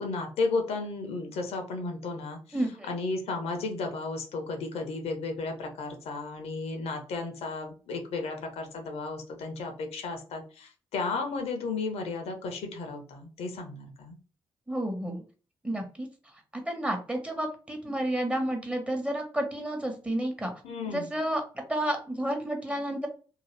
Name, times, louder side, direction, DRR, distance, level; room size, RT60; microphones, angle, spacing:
voice 1, 0.0-2.6 2.9-14.2 20.6-21.1, left 3 dB, 70° left, 4 dB, 0.7 m, -34 dB
voice 2, 2.5-2.9 14.7-15.2 15.6-16.1 16.5-20.5 20.9-21.4 21.7-23.1, right 1 dB, 10° right, 3 dB, 1.0 m, -30 dB
2.7 x 2.2 x 3.2 m, 0.38 s
hypercardioid pair, 45°, 11 cm